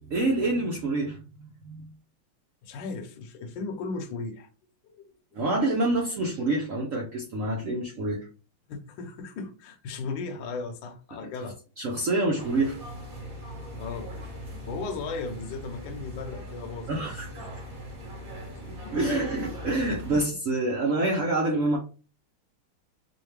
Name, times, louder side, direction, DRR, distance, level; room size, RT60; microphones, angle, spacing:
voice 1, 0.0-1.9 5.3-8.2 11.8-12.8 16.9-17.5 18.7-21.8, right 2 dB, 90° right, 0.7 m, -27 dB
voice 2, 2.6-4.5 4.8-5.1 8.7-11.6 13.8-14.1 14.7-17.1 18.8-19.1, left 4 dB, 65° left, 1.3 m, -36 dB
sound 1, 12.4-20.2, equal, 45° right, 1.6 m, -40 dB
4.9 x 2.2 x 3.2 m
omnidirectional pair, 2.4 m